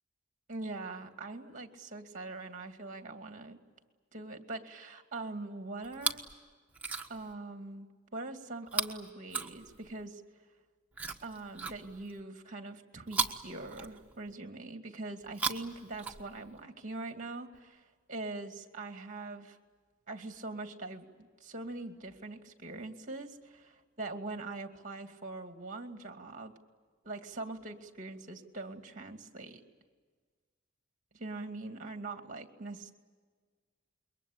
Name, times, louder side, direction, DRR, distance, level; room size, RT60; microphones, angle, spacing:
voice 1, 0.5-3.6 4.1-6.2 7.1-7.9 8.1-10.2 11.2-19.6 20.1-26.5 27.0-29.6 31.1-32.9, right 2 dB, 35° right, 5 dB, 2.4 m, -42 dB
Chewing mastication, 5.8-6.3 6.7-7.3 8.7-10.0 10.9-12.2 13.1-14.3 15.2-16.6 17.5-17.6, right 4 dB, 5° right, 1.3 m, -37 dB
28.0 x 23.0 x 8.8 m, 1.5 s
head